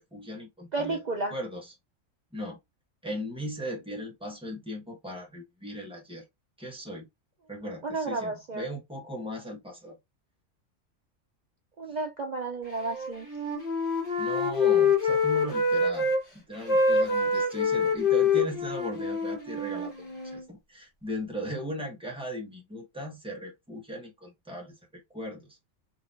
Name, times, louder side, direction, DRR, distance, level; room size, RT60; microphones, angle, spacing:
voice 1, 0.0-1.0 1.3-1.6 2.3-2.6 3.0-6.2 6.6-7.1 7.5-10.0 11.9-12.0 14.2-25.6, equal, 5° right, 1.2 m, -38 dB
voice 2, 0.7-1.4 7.8-8.7 11.8-13.3, right 3 dB, 70° right, 0.4 m, -32 dB
Wind instrument woodwind instrument, 12.8-16.2 16.5-20.4, left 4 dB, 40° left, 1.8 m, -26 dB
3.9 x 2.8 x 2.5 m
omnidirectional pair, 1.4 m